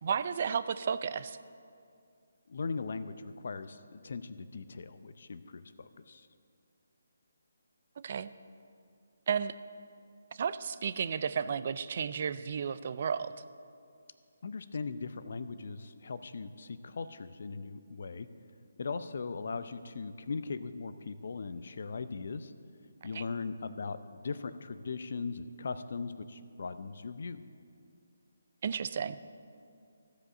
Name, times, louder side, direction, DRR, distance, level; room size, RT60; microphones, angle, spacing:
voice 1, 0.0-1.4 8.0-8.3 9.3-9.6 10.3-13.3 23.1-23.2 28.6-29.2, right 7 dB, 45° right, 14 dB, 0.4 m, -33 dB
voice 2, 2.5-6.3 14.4-18.3 18.8-22.5 23.0-27.4, left 4 dB, 60° left, 12 dB, 0.5 m, -39 dB
15.0 x 5.1 x 6.6 m, 2.4 s
figure-of-eight pair, 155°, 0 cm